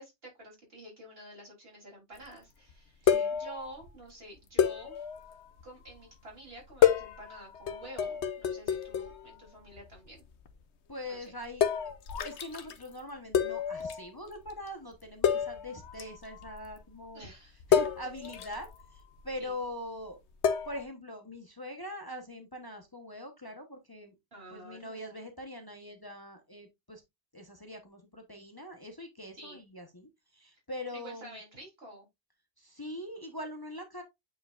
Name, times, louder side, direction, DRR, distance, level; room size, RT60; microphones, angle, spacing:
voice 1, 0.0-5.0 5.6-10.2 11.0-11.3 17.1-17.6 19.4-19.6 24.3-25.2 29.4-29.6 30.5-30.6 30.9-32.1, right 1 dB, 65° right, 3.8 m, -49 dB
sound 1, 2.2-2.3 2.7-2.8 3.1-3.9 4.6-6.0 6.6-9.4 9.6-10.1 10.4-10.5 11.6-12.9 13.3-14.1 14.3-14.5 14.9-15.0 15.2-16.8 17.6-19.3 20.4-20.8, left 8 dB, 90° left, 1.1 m, -29 dB
voice 2, 3.0-3.4 10.9-11.7 12.2-17.3 17.7-20.2 20.7-24.1 24.5-27.0 27.3-31.4 32.6-34.0, left 1 dB, 20° left, 1.1 m, -43 dB
8.5 x 4.7 x 2.5 m
omnidirectional pair, 1.1 m